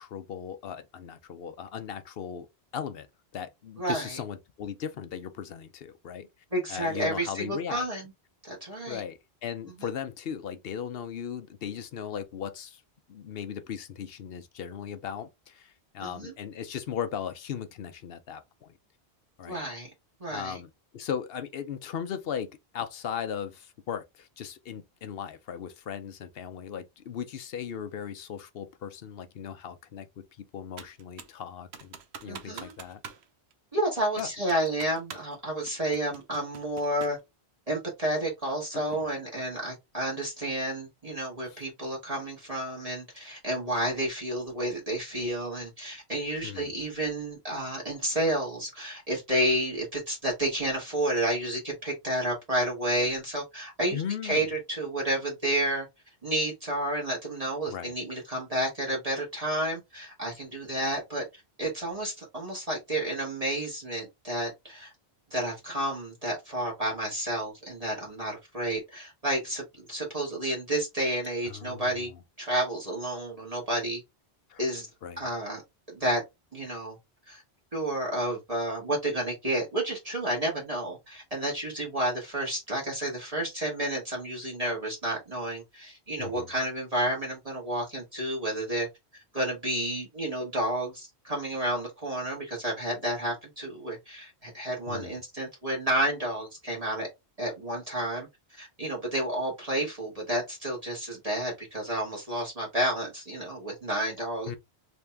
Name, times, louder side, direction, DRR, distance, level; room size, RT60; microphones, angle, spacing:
voice 1, 0.0-2.5 2.7-3.1 3.3-6.3 6.7-7.9 8.9-12.8 13.1-18.7 19.4-19.6 20.3-32.0 32.2-33.0 34.2-34.3 38.7-39.0 41.5-41.6 46.4-46.7 53.9-54.5 57.7-57.9 71.4-71.9 74.5-74.6 75.0-75.3 86.2-86.5 94.9-95.2 104.4-104.6, left 8 dB, 65° left, 0.8 m, -37 dB
voice 2, 3.8-4.2 6.5-8.1 8.5-9.0 9.8-9.9 16.0-16.3 19.5-19.9 20.2-20.6 32.2-32.7 33.7-37.2 37.7-55.9 56.2-61.2 61.6-64.9 65.3-72.1 72.4-74.0 74.6-74.9 75.2-75.6 75.9-76.2 76.5-76.9 77.3-77.4 77.7-88.9 89.3-97.1 97.4-98.3 98.6-104.5, right 1 dB, 35° right, 1.7 m, -31 dB
Computer keyboard, 30.8-31.4 31.7-33.2 33.5-33.6 34.2-35.4 35.7-37.2, right 6 dB, 80° right, 1.0 m, -45 dB
3.4 x 2.8 x 3.3 m
omnidirectional pair, 1.1 m